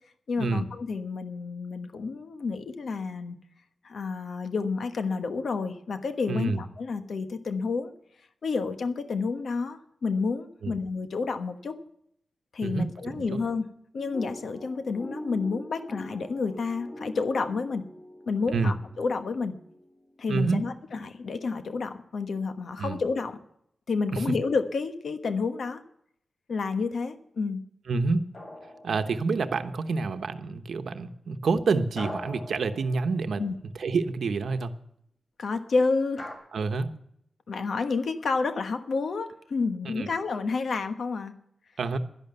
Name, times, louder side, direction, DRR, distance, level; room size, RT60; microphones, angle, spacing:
voice 1, 0.3-3.4 3.8-7.9 8.4-11.7 12.5-13.6 13.9-17.8 18.3-19.5 20.2-23.4 23.9-25.8 26.5-27.6 33.4-33.6 35.4-36.2 37.5-41.3, left 4 dB, 65° left, 8 dB, 1.2 m, -30 dB
voice 2, 6.3-6.6 10.6-10.7 12.6-12.9 13.1-13.4 18.5-18.7 20.3-20.6 22.8-23.0 24.1-24.2 27.9-28.3 28.8-33.4 33.8-34.7 36.5-36.9 39.8-40.1 41.8-42.0, right 4 dB, 75° right, 9 dB, 1.0 m, -28 dB
sound 1, 14.0-20.2, equal, 15° left, 2.4 m, -43 dB
sound 2, 28.3-29.6 32.0-33.6 36.2-36.4, left 1 dB, 35° left, 3.5 m, -42 dB
11.5 x 11.0 x 6.9 m, 0.72 s
wide cardioid pair, 180°, 0 cm